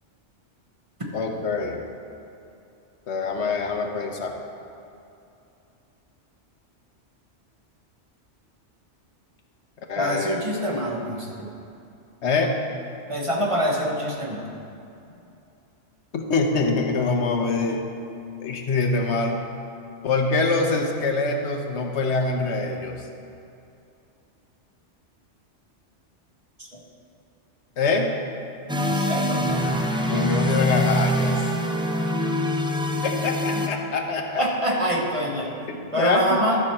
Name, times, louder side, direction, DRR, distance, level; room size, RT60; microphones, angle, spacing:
voice 1, 1.1-1.8 3.1-4.3 9.9-10.4 12.2-12.6 16.1-17.9 18.4-19.4 20.0-23.0 27.8-28.1 30.1-31.4 33.0-34.5 35.7-36.4, left 3 dB, 70° left, 3 dB, 1.1 m, -24 dB
voice 2, 10.0-11.5 13.1-14.6 26.6-26.8 28.8-29.6 34.4-35.6 35.9-36.6, equal, 30° right, -2 dB, 1.0 m, -25 dB
sound 1, 28.7-33.7, equal, 10° right, 0.3 m, -23 dB
12.0 x 6.2 x 4.3 m, 2.7 s
omnidirectional pair, 1.2 m